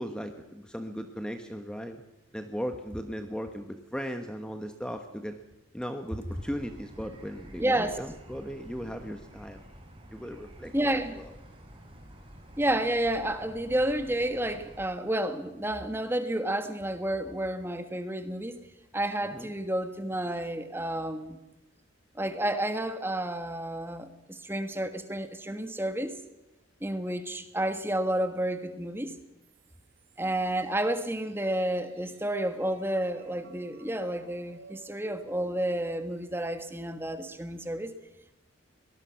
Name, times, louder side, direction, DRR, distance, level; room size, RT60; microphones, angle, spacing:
voice 1, 0.0-2.0 2.3-5.4 5.7-9.6 10.1-11.3 19.2-19.5, equal, 5° left, 6 dB, 1.2 m, -37 dB
sound 1, 6.3-14.9, equal, 25° right, 3.4 m, -50 dB
voice 2, 7.6-8.0 10.7-11.2 12.6-18.6 18.9-21.4 22.1-26.1 26.8-29.1 30.2-37.9, right 1 dB, 10° right, 9 dB, 1.5 m, -30 dB
sound 2, 29.4-37.5, right 4 dB, 75° right, 2.7 m, -56 dB
23.5 x 19.5 x 5.8 m, 0.97 s
head